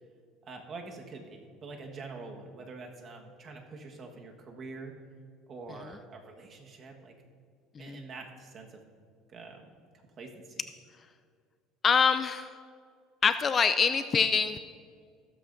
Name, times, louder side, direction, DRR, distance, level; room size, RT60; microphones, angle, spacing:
voice 1, 0.4-4.9 5.5-7.1 7.8-8.8 9.3-9.6 10.2-10.6, right 3 dB, 35° right, 2 dB, 1.4 m, -45 dB
voice 2, 11.8-12.5 13.2-14.6, left 6 dB, 25° left, 11 dB, 0.3 m, -25 dB
15.0 x 13.5 x 2.6 m, 2.1 s
cardioid pair, 145°, 0 cm